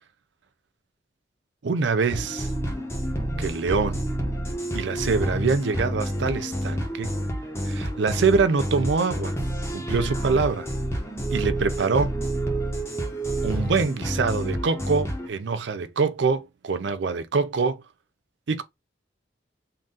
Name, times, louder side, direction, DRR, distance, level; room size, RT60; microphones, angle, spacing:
voice 1, 1.6-2.5 3.4-4.0 4.7-7.2 7.7-9.3 9.7-10.7 11.3-12.1 13.4-17.8 18.5-18.6, right 4 dB, 70° right, 0.5 m, -24 dB
sound 1, 2.1-15.3, right 1 dB, 15° left, 0.9 m, -29 dB
3.9 x 2.4 x 3.7 m
head